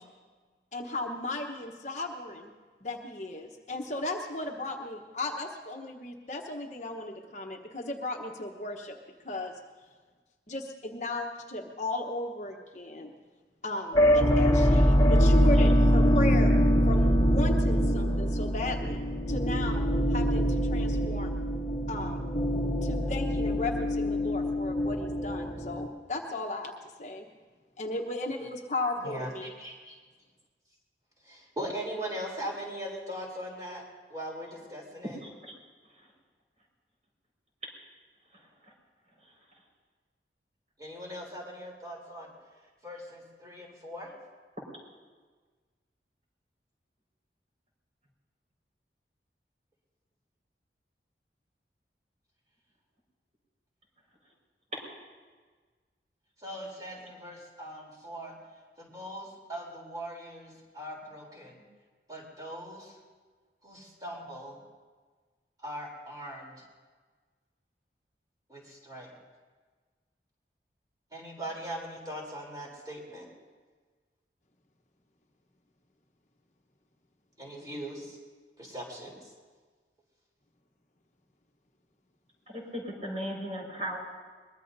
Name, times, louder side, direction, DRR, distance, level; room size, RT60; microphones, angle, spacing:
voice 1, 0.7-2.5 2.8-9.0 9.2-9.5 10.5-13.1 13.6-16.5 16.8-19.0 19.3-19.8 20.1-21.4 21.9-22.2 22.8-26.7 27.0-27.3 27.8-29.5, left 2 dB, 40° left, 2 dB, 1.1 m, -35 dB
sound 1, 13.9-25.9, equal, 20° left, 1.3 m, -24 dB
voice 2, 29.6-29.9 31.3-33.8 34.1-35.2 40.8-42.3 42.8-44.1 56.4-58.3 58.8-61.6 62.1-62.9 63.6-64.6 65.6-66.6 68.5-69.1 71.1-73.3 77.4-78.2 78.6-79.2, equal, 20° right, -2 dB, 3.5 m, -40 dB
voice 3, 35.2-35.5 82.5-84.0, equal, 40° right, -2 dB, 5.2 m, -36 dB
22.5 x 21.0 x 2.7 m, 1.4 s
head